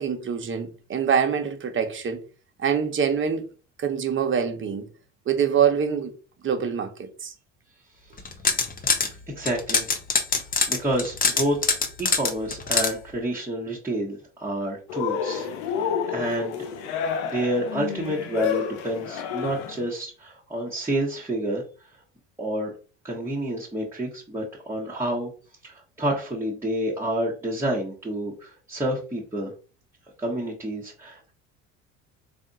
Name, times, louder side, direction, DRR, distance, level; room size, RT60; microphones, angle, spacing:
voice 1, 0.0-2.2 2.6-3.5 3.8-4.9 5.3-6.1 6.4-7.3, right 7 dB, 35° right, 1.0 m, -25 dB
sound 1, 8.2-9.1 9.5-12.9, left 4 dB, 25° left, 0.8 m, -23 dB
voice 2, 9.3-9.9 10.7-16.6 17.2-21.6 22.4-22.7 23.0-25.3 25.6-29.5 30.2-31.3, right 1 dB, 5° right, 1.2 m, -29 dB
Cheering, 14.9-19.8, left 7 dB, 75° left, 0.7 m, -29 dB
3.4 x 2.5 x 4.0 m
hypercardioid pair, 70°, 37 cm